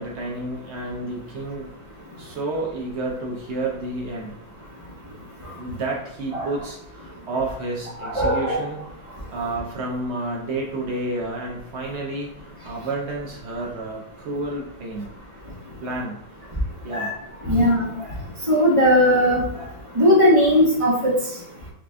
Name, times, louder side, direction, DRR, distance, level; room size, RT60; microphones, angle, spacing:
voice 1, 0.0-1.7 2.2-4.3 5.6-8.8 9.3-15.1 15.8-16.2 16.8-17.1, right 2 dB, 90° right, -2 dB, 0.5 m, -30 dB
voice 2, 8.0-8.6 16.9-17.1 17.4-17.9 18.5-19.4 19.9-21.1, equal, 20° right, -4 dB, 0.9 m, -18 dB
5.0 x 2.5 x 3.4 m, 0.72 s
omnidirectional pair, 2.1 m